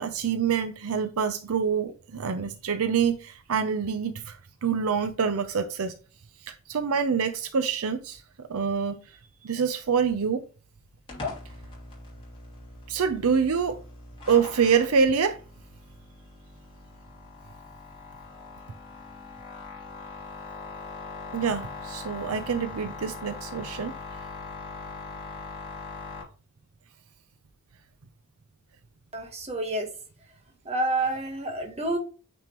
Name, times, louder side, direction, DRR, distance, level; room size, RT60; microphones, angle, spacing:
voice 1, 0.0-4.4 4.6-5.9 6.5-8.2 8.5-9.0 9.4-10.4 12.9-13.8 14.3-15.4 21.3-23.9, right 6 dB, 70° right, 0.6 m, -26 dB
sound 1, 11.1-26.2, left 4 dB, 25° left, 2.8 m, -41 dB
voice 2, 29.1-29.9 30.6-32.0, right 2 dB, 30° right, 1.3 m, -28 dB
9.0 x 3.5 x 3.0 m
head